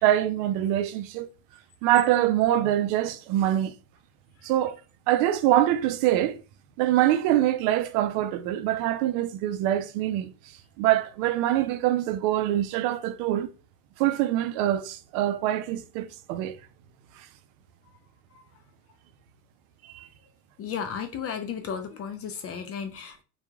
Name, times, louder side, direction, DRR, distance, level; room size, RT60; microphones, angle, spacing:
voice 1, 0.0-1.3 1.8-3.7 4.4-4.8 5.1-6.4 6.8-10.3 10.8-13.5 14.0-16.5 17.2-17.3 19.8-20.1, right 13 dB, 75° right, 0.5 m, -24 dB
voice 2, 20.6-23.2, left 7 dB, 35° left, 0.4 m, -34 dB
2.9 x 2.3 x 2.2 m
supercardioid pair, 100°, 43 cm